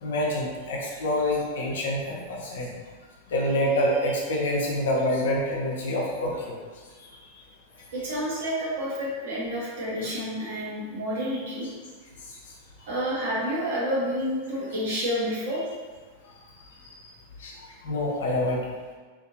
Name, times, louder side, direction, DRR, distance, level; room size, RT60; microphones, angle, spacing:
voice 1, 0.0-2.7 3.3-6.6 17.0-17.1 17.4-18.6, left 1 dB, 60° left, -2 dB, 0.6 m, -27 dB
voice 2, 7.9-11.7 12.9-15.7, equal, 55° right, -6 dB, 0.9 m, -29 dB
2.6 x 2.5 x 2.6 m, 1.5 s
figure-of-eight pair, 90°, 0 cm